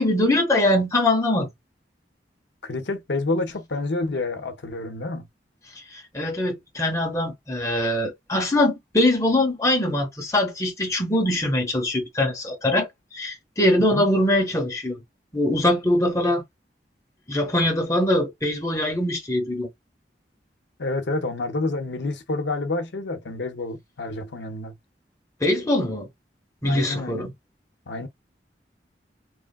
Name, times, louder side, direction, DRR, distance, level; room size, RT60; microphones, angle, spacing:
voice 1, 0.0-1.5 5.9-15.0 15.3-16.4 17.3-19.7 25.4-26.1 26.6-27.3, left 1 dB, 20° left, 0.8 m, -22 dB
voice 2, 2.6-5.3 13.8-14.1 20.8-24.8 26.6-27.3 27.9-28.1, left 2 dB, 85° left, 0.7 m, -28 dB
3.1 x 2.3 x 2.3 m
head